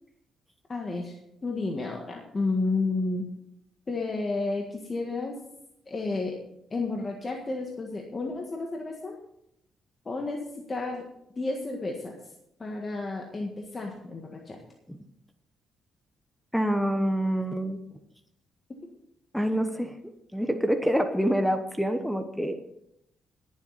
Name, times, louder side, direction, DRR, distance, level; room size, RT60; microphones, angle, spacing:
voice 1, 0.7-1.2 1.4-3.2 3.9-5.4 5.9-6.4 6.7-9.2 10.0-11.1 11.4-12.2 12.6-14.6, left 3 dB, 30° left, 1 dB, 1.7 m, -31 dB
voice 2, 16.5-17.8 19.3-19.9 20.3-22.6, equal, ahead, 7 dB, 1.0 m, -26 dB
19.5 x 7.5 x 4.2 m, 0.80 s
cardioid pair, 90°, 0 cm